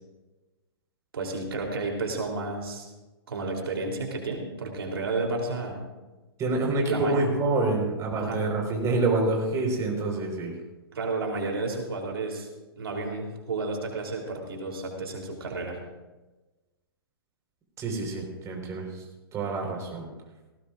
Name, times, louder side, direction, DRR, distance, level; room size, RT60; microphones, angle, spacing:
voice 1, 1.1-2.9 3.3-5.8 6.9-7.2 8.2-8.4 10.9-12.5 12.8-15.8, right 3 dB, 75° right, 1 dB, 3.4 m, -31 dB
voice 2, 6.4-10.5 17.8-18.8 19.3-20.1, right 2 dB, 25° right, 0 dB, 4.5 m, -27 dB
18.5 x 18.5 x 2.5 m, 1.1 s
hypercardioid pair, 125°, 13 cm